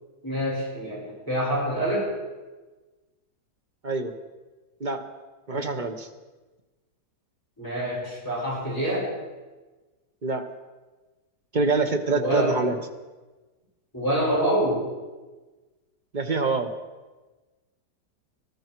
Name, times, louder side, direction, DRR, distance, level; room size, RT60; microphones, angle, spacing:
voice 1, 0.2-2.1 5.5-5.7 7.6-9.1 12.1-12.6 13.9-14.9, right 1 dB, 10° left, -7 dB, 6.1 m, -26 dB
voice 2, 5.5-6.1 10.2-10.5 11.5-12.8 16.1-16.7, right 3 dB, 35° right, 6 dB, 0.8 m, -25 dB
19.5 x 13.5 x 4.6 m, 1.2 s
omnidirectional pair, 1.8 m